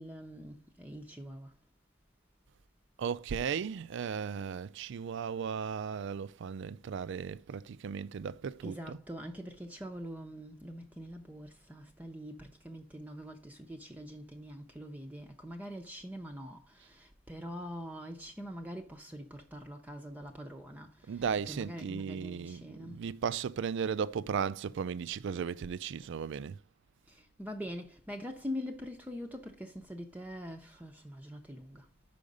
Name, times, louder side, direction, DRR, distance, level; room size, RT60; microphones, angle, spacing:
voice 1, 0.0-1.5 8.6-23.0 27.1-31.9, equal, 10° right, 0.6 m, -44 dB
voice 2, 3.0-9.0 21.1-26.6, right 6 dB, 65° right, 0.4 m, -36 dB
5.7 x 5.0 x 5.2 m
head